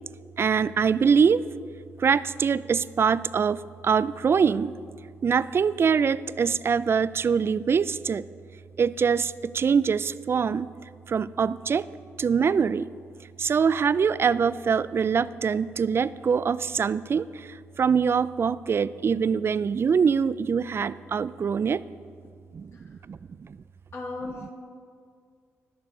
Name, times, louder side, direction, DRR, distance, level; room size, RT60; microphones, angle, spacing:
voice 1, 0.4-1.4 2.0-4.7 5.2-8.2 8.8-10.7 11.1-11.9 12.2-12.9 13.4-21.8 22.5-23.6, right 6 dB, 45° right, 17 dB, 0.3 m, -24 dB
voice 2, 23.9-24.5, left 2 dB, 50° left, -1 dB, 2.2 m, -36 dB
19.5 x 6.8 x 3.8 m, 2.2 s
cardioid pair, 65°, 6 cm